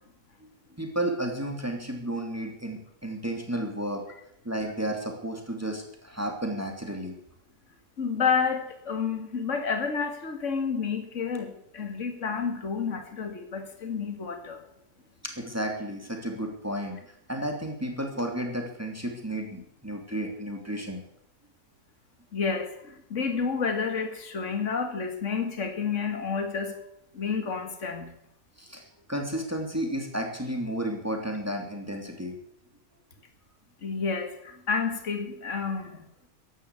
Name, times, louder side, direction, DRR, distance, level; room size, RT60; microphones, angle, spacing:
voice 1, 0.8-4.0 4.4-7.2 15.2-21.0 28.6-32.4, right 1 dB, 10° right, 3 dB, 2.8 m, -32 dB
voice 2, 8.0-14.6 22.3-26.8 27.1-28.1 33.8-36.0, left 5 dB, 45° left, 5 dB, 2.5 m, -30 dB
15.0 x 11.0 x 8.2 m, 0.77 s
omnidirectional pair, 1.8 m